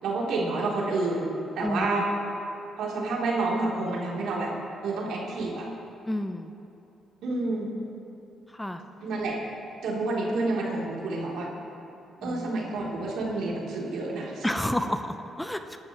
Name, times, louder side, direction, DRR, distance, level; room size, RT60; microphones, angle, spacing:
voice 1, 0.0-2.1 2.8-4.5 4.8-5.7 7.2-7.7 9.0-9.4 9.8-11.5 12.2-14.5, right 2 dB, 80° right, -4 dB, 3.2 m, -29 dB
voice 2, 6.1-6.5 8.5-8.8 12.2-12.5 14.4-15.8, left 1 dB, 5° left, 7 dB, 0.6 m, -30 dB
24.5 x 12.0 x 3.1 m, 2.9 s
cardioid pair, 90°, 0 cm